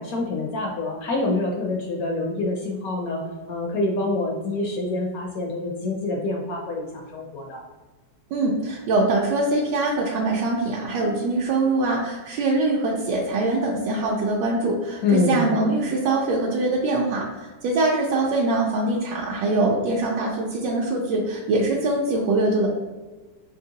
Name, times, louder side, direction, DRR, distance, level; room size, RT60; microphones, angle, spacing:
voice 1, 0.0-3.2 3.5-7.6 15.0-15.5, left 2 dB, 70° left, 0 dB, 0.8 m, -26 dB
voice 2, 8.3-22.7, right 2 dB, 80° right, -3 dB, 1.3 m, -23 dB
5.3 x 2.8 x 2.8 m, 1.3 s
omnidirectional pair, 2.0 m